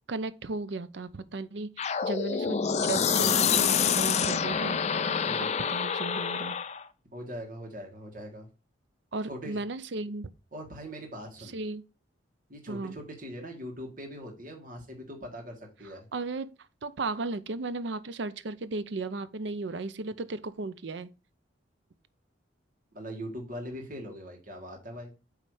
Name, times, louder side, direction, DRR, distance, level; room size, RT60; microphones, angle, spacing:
voice 1, 0.1-4.8 5.7-6.6 9.1-10.3 11.4-11.8 12.7-13.0 16.1-16.5 16.8-21.1, right 3 dB, 65° right, 0.6 m, -35 dB
sound 1, 1.8-6.8, left 7 dB, 35° left, 0.4 m, -27 dB
voice 2, 7.1-8.5 9.3-9.6 10.5-11.5 12.5-16.1 22.9-25.1, equal, 45° right, 1.8 m, -41 dB
8.5 x 3.2 x 4.8 m
head